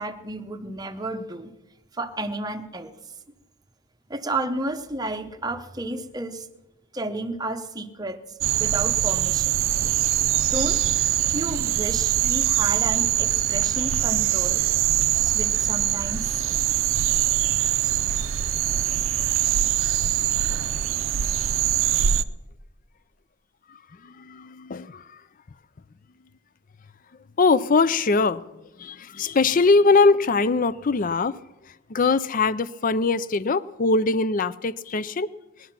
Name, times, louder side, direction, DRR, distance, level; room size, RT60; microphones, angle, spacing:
voice 1, 0.0-1.5 1.9-3.0 4.1-6.5 6.9-9.5 10.5-10.8 11.3-14.6 15.2-16.4, right 2 dB, 20° right, 0.8 m, -32 dB
sound 1, 8.4-22.2, right 11 dB, 65° right, 0.5 m, -23 dB
voice 2, 24.0-25.2 27.4-28.5 28.8-31.4 31.9-35.3, left 3 dB, 40° left, 0.5 m, -22 dB
19.5 x 11.0 x 5.9 m
head